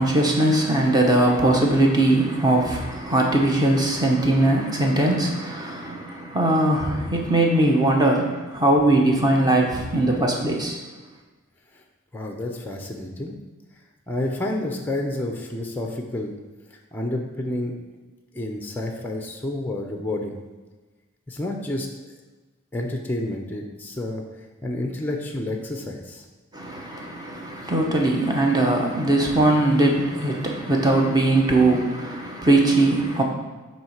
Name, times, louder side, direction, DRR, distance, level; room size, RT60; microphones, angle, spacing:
voice 1, 0.0-10.8 26.5-33.2, right 2 dB, 20° right, 0 dB, 0.9 m, -20 dB
voice 2, 12.1-13.3 14.1-16.4 16.9-17.7 18.3-20.4 21.3-21.9 22.7-24.2 24.6-26.2, left 1 dB, 10° left, 2 dB, 0.5 m, -29 dB
7.5 x 3.1 x 5.8 m, 1.2 s
head